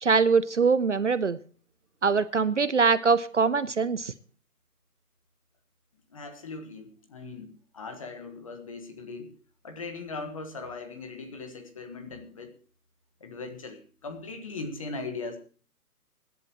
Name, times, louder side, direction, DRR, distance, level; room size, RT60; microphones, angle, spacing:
voice 1, 0.0-1.4 2.0-4.1, right 5 dB, 50° right, 15 dB, 0.7 m, -23 dB
voice 2, 6.1-9.3 9.6-12.5 13.2-15.4, left 3 dB, 20° left, 6 dB, 1.5 m, -39 dB
24.0 x 11.0 x 3.0 m, 0.43 s
hypercardioid pair, 170°, 47 cm